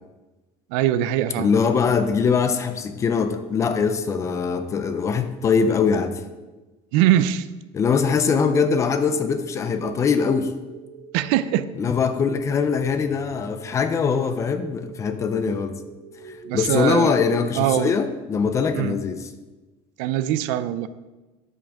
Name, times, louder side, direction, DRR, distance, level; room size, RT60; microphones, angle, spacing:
voice 1, 0.7-1.5 6.9-7.5 11.1-11.7 16.4-17.1 17.6-17.9 18.7-19.0 20.0-20.9, right 12 dB, 75° right, 13 dB, 0.6 m, -22 dB
voice 2, 1.4-6.2 7.7-10.5 11.8-15.8 16.3-19.3, left 5 dB, 20° left, 9 dB, 0.6 m, -22 dB
sound 1, 8.3-18.3, right 5 dB, 30° right, 2.9 m, -45 dB
12.5 x 7.6 x 3.6 m, 1.2 s
cardioid pair, 180°, 15 cm